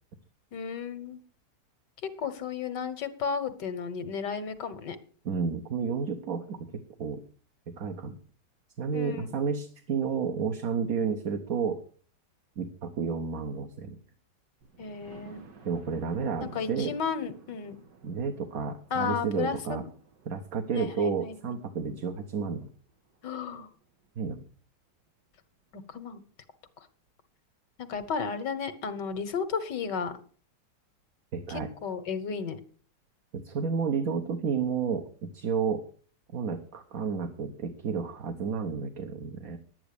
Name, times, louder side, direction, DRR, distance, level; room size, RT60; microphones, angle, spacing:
voice 1, 0.5-1.2 2.0-5.0 8.9-9.4 14.8-15.4 16.4-17.8 18.9-19.8 20.7-21.6 23.2-23.7 25.7-26.2 26.8-26.9 27.8-30.1 31.5-32.6, left 6 dB, 75° left, 11 dB, 1.8 m, -33 dB
voice 2, 5.2-6.7 7.0-7.2 7.7-8.2 8.8-11.8 12.6-14.0 15.6-16.9 18.0-19.8 20.2-22.7 24.2-24.4 31.3-31.7 33.3-35.8 36.3-39.6, right 6 dB, 55° right, 5 dB, 1.5 m, -31 dB
Thunder, 14.6-24.3 24.9-25.0 25.4-25.5 25.8-25.9, right 6 dB, 80° right, 2.3 m, -55 dB
11.0 x 9.5 x 6.7 m, 0.43 s
omnidirectional pair, 1.9 m